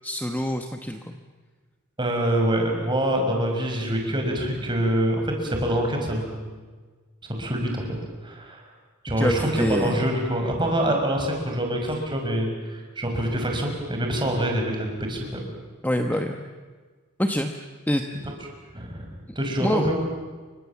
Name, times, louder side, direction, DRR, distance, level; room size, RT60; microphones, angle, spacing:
voice 1, 0.0-1.2 9.2-10.0 15.8-16.4 17.2-17.5 17.9-18.0 19.6-19.9, equal, 10° left, 5 dB, 1.1 m, -25 dB
voice 2, 2.0-6.5 7.3-8.6 9.0-15.4 18.7-19.0 19.4-20.0, right 1 dB, 20° right, 2 dB, 5.7 m, -25 dB
29.5 x 24.5 x 7.3 m, 1.4 s
head